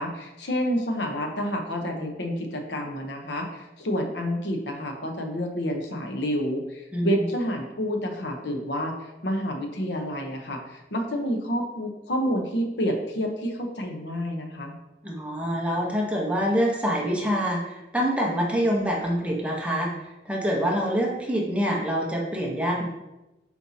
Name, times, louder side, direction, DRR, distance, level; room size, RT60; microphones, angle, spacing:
voice 1, 0.0-14.8, equal, 70° left, 3 dB, 0.9 m, -29 dB
voice 2, 15.0-19.9 20.2-22.9, equal, 5° right, -2 dB, 1.0 m, -25 dB
7.9 x 4.4 x 2.8 m, 0.98 s
head